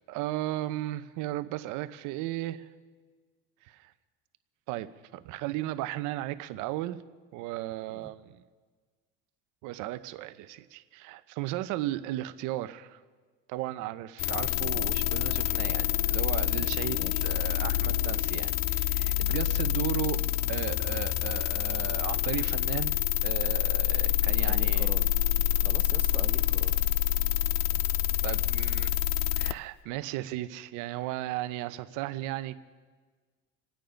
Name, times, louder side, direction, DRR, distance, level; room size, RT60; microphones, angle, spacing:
voice 1, 0.1-2.7 3.6-3.9 4.7-7.0 7.3-8.4 9.6-13.0 13.5-20.2 20.5-22.9 23.2-24.9 28.2-28.9 29.3-32.6, right 15 dB, 60° right, 12 dB, 0.9 m, -35 dB
sound 1, 14.2-29.5, left 13 dB, 55° left, 0.6 m, -27 dB
voice 2, 16.9-17.3 24.4-25.1 25.6-26.8, right 3 dB, 5° right, 7 dB, 0.4 m, -44 dB
28.0 x 9.3 x 5.2 m, 1.5 s
supercardioid pair, 130°, 34 cm